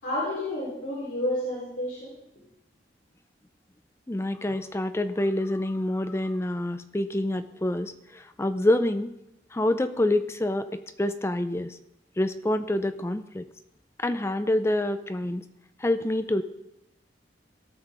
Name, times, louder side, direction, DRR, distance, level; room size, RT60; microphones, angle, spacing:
voice 1, 0.0-2.1, left 1 dB, 75° left, -9 dB, 4.1 m, -30 dB
voice 2, 4.1-9.1 9.5-11.8 12.2-13.4 14.0-15.4 15.8-16.4, left 1 dB, 15° left, 10 dB, 0.4 m, -27 dB
17.5 x 6.4 x 3.8 m, 0.88 s
head